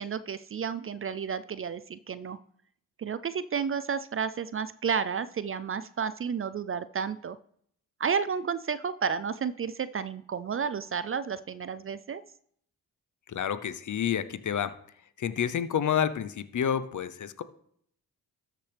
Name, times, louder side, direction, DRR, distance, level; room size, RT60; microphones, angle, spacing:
voice 1, 0.0-2.4 3.0-7.4 8.0-12.2, right 6 dB, 35° right, 15 dB, 0.4 m, -31 dB
voice 2, 13.3-14.7 15.2-17.4, left 8 dB, 50° left, 14 dB, 0.7 m, -29 dB
13.0 x 6.0 x 3.4 m, 0.67 s
supercardioid pair, 50°, 39 cm